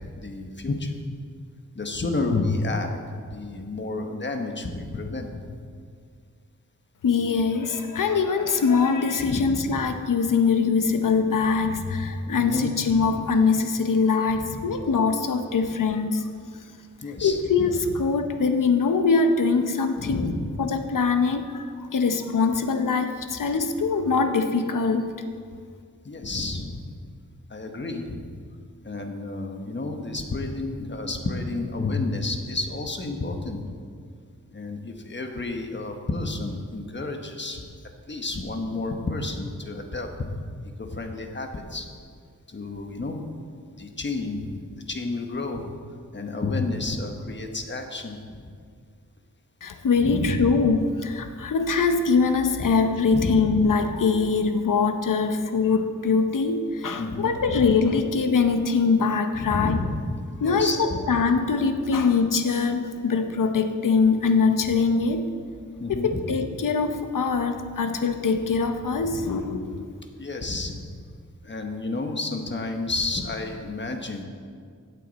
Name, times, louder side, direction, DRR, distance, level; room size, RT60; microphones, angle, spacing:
voice 1, 0.2-1.0 1.7-3.0 3.3-5.6 9.2-9.6 12.3-12.7 13.0-13.1 14.3-14.6 17.0-18.0 20.0-20.5 26.0-26.8 27.5-28.2 28.8-33.7 34.5-37.6 38.1-40.1 40.8-41.9 42.5-43.2 43.8-45.7 46.1-48.5 50.0-50.5 52.6-52.7 53.1-53.3 57.0-57.7 59.4-59.9 60.4-61.1 65.8-66.2 69.0-69.4 70.2-70.9 71.4-74.2, left 3 dB, 35° left, 4 dB, 1.3 m, -30 dB
voice 2, 7.0-16.3 17.2-20.3 20.6-25.2 49.6-59.8 60.4-65.3 65.9-69.9, left 4 dB, 80° left, 6 dB, 0.8 m, -23 dB
16.5 x 8.3 x 4.1 m, 2.1 s
wide cardioid pair, 105°, 31 cm